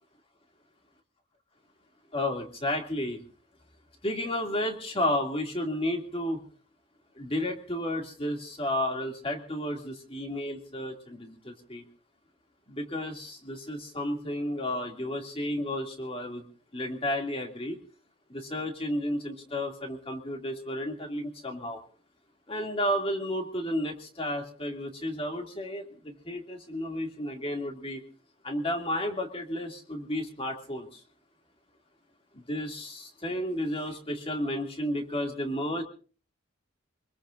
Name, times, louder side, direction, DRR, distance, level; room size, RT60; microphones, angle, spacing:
voice 1, 2.1-3.2 4.0-6.4 7.1-11.8 12.7-16.4 16.7-17.8 18.3-21.8 22.5-28.0 28.4-31.0 32.3-35.8, left 1 dB, 25° left, 3 dB, 2.5 m, -32 dB
25.0 x 21.5 x 2.6 m, 0.40 s
head